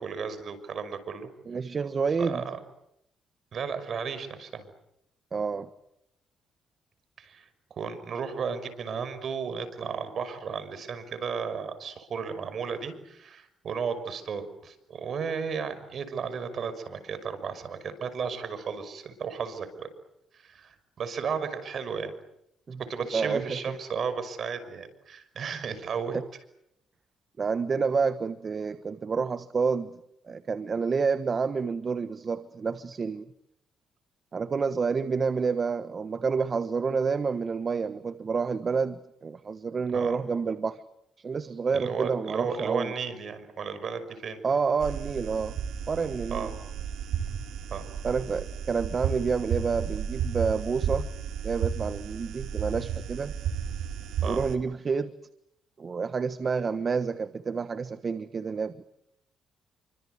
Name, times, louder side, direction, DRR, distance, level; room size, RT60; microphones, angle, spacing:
voice 1, 0.0-1.3 2.2-2.6 3.5-4.7 7.2-7.5 7.8-19.9 20.3-22.1 22.8-26.2 39.9-40.2 41.7-44.4 46.3-46.5 47.7-47.9 54.2-54.4, right 6 dB, 55° right, 11 dB, 5.9 m, -34 dB
voice 2, 1.5-2.4 5.3-5.7 22.7-22.8 23.1-23.6 25.5-25.6 26.1-26.2 27.4-30.0 30.3-33.2 34.3-40.8 41.2-42.9 44.4-45.6 45.9-46.5 48.0-51.1 51.4-53.3 54.2-55.1 55.8-58.8, right 5 dB, 40° right, 12 dB, 1.3 m, -29 dB
sound 1, 44.8-54.6, right 8 dB, 80° right, 3.5 m, -33 dB
28.5 x 25.0 x 8.1 m, 0.78 s
cardioid pair, 90°, 0 cm